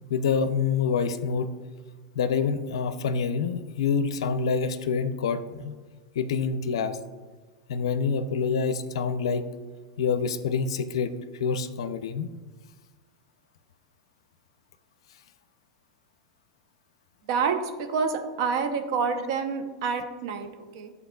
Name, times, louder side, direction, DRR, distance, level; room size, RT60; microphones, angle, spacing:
voice 1, 0.1-1.5 2.1-5.7 6.2-7.0 7.7-9.5 10.0-12.3, left 5 dB, 80° left, 11 dB, 0.4 m, -27 dB
voice 2, 17.3-20.9, right 5 dB, 65° right, 6 dB, 0.7 m, -28 dB
11.0 x 4.0 x 2.3 m, 1.4 s
hypercardioid pair, 105°, 3 cm